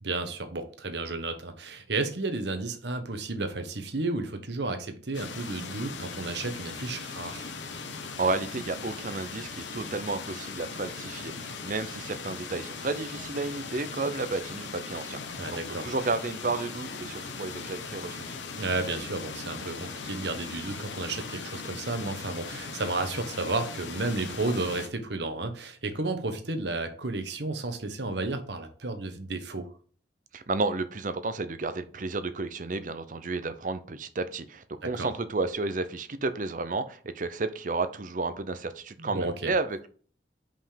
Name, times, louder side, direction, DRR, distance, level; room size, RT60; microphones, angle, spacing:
voice 1, 0.0-7.5 15.4-15.9 18.6-29.7 34.8-35.1 39.0-39.5, right 2 dB, 65° right, 7 dB, 1.2 m, -32 dB
sound 1, 5.1-24.9, left 4 dB, 80° left, 1.0 m, -39 dB
voice 2, 8.2-15.6 15.8-18.3 30.3-39.9, right 3 dB, 45° right, 11 dB, 0.6 m, -32 dB
5.7 x 5.3 x 5.1 m, 0.43 s
head